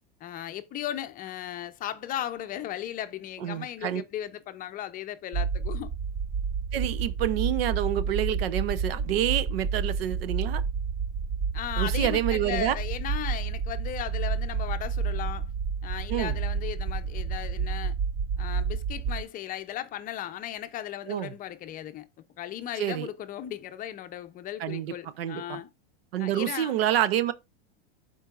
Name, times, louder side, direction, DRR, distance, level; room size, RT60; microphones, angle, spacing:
voice 1, 0.2-5.9 11.5-15.5 15.8-17.9 18.4-22.1 22.4-25.7 26.2-26.8, left 12 dB, 30° left, 0.6 m, -36 dB
voice 2, 3.4-4.0 6.7-10.6 11.8-12.8 16.1-16.4 21.1-21.3 22.8-23.1 24.6-25.6 26.1-27.3, right 12 dB, 80° right, 0.8 m, -28 dB
sound 1, 5.3-19.2, right 5 dB, 20° right, 0.4 m, -30 dB
11.5 x 4.6 x 2.4 m
supercardioid pair, 130°, 29 cm